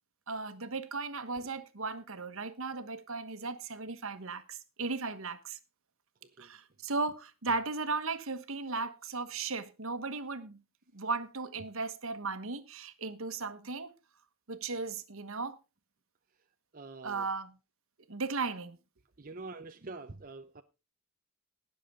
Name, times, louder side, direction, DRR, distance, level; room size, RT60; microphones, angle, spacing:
voice 1, 0.3-5.6 6.4-10.6 10.9-13.9 14.5-15.6 17.0-17.6 18.1-18.8, right 3 dB, 65° right, 1.3 m, -36 dB
voice 2, 16.7-17.3 19.2-20.6, right 3 dB, 40° right, 0.7 m, -45 dB
19.5 x 6.9 x 3.7 m
head